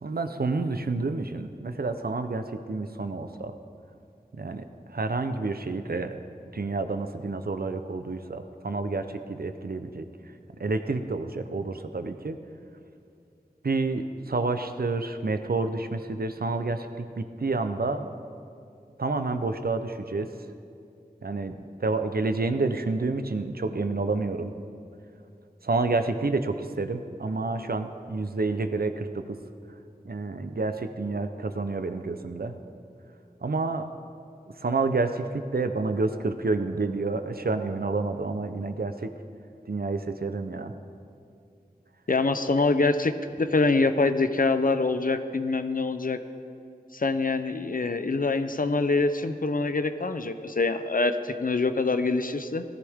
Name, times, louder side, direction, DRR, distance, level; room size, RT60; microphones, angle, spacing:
voice 1, 0.0-3.5 4.3-4.6 4.9-6.1 6.5-10.1 10.6-12.4 13.6-18.1 19.0-20.3 21.2-24.5 25.6-29.1 30.0-32.5 33.4-33.9 34.6-39.1 39.7-40.7, right 3 dB, 75° right, 8 dB, 0.8 m, -29 dB
voice 2, 42.1-43.1 43.4-46.2 46.9-52.6, left 3 dB, 60° left, 9 dB, 0.7 m, -25 dB
18.0 x 13.5 x 3.6 m, 2.4 s
wide cardioid pair, 55°, 16 cm